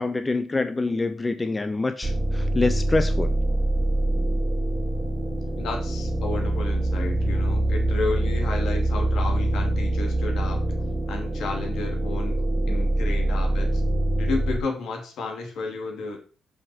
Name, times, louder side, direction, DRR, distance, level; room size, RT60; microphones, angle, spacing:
voice 1, 0.0-3.3, left 3 dB, 20° left, 9 dB, 0.7 m, -26 dB
sound 1, 2.0-14.6, right 1 dB, 15° right, 2.2 m, -24 dB
voice 2, 5.6-10.6 11.1-12.4 12.7-13.8 14.2-16.2, left 3 dB, 75° left, 2 dB, 2.7 m, -32 dB
6.6 x 6.1 x 6.2 m, 0.38 s
cardioid pair, 90°, 0 cm